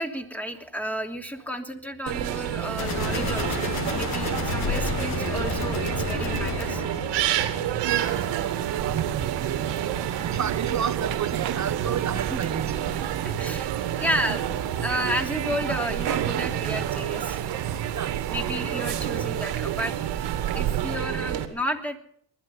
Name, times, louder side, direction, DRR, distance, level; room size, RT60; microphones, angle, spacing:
voice 1, 0.0-6.8 7.4-7.5 8.1-8.3 12.3-12.4 13.2-13.7 14.0-17.8 18.3-20.0 20.5-22.0, equal, 5° left, 4 dB, 3.1 m, -32 dB
sound 1, 2.1-21.4, right 10 dB, 80° right, 2.4 m, -29 dB
sound 2, 2.8-7.7, left 4 dB, 55° left, 4.0 m, -30 dB
voice 2, 7.8-9.9 10.2-13.1 17.9-18.3, right 8 dB, 40° right, 12 dB, 1.2 m, -33 dB
sound 3, 7.9-21.0, right 11 dB, 60° right, 1.3 m, -35 dB
20.5 x 12.0 x 5.8 m, 0.64 s
supercardioid pair, 80°, 43 cm